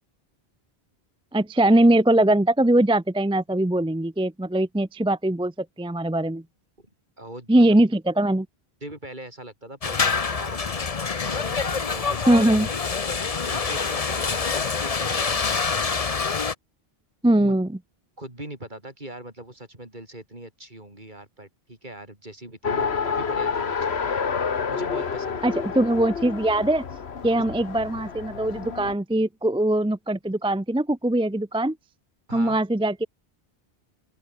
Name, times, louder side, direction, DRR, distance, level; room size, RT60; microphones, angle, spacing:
voice 1, 1.3-6.4 7.5-8.5 12.3-12.7 17.2-17.7 25.4-26.8 27.2-31.8 32.3-33.1, right 1 dB, 5° right, 0.4 m, -21 dB
voice 2, 7.2-7.8 8.8-10.9 11.2-12.6 13.1-15.9 17.4-17.5 18.2-24.4 24.7-25.7 32.3-32.6, right 1 dB, 50° right, 6.2 m, -41 dB
sound 1, 9.8-16.5, left 5 dB, 35° left, 1.0 m, -26 dB
Race car auto racing, 22.6-28.9, left 6 dB, 90° left, 1.7 m, -29 dB
open air
omnidirectional pair, 1.1 m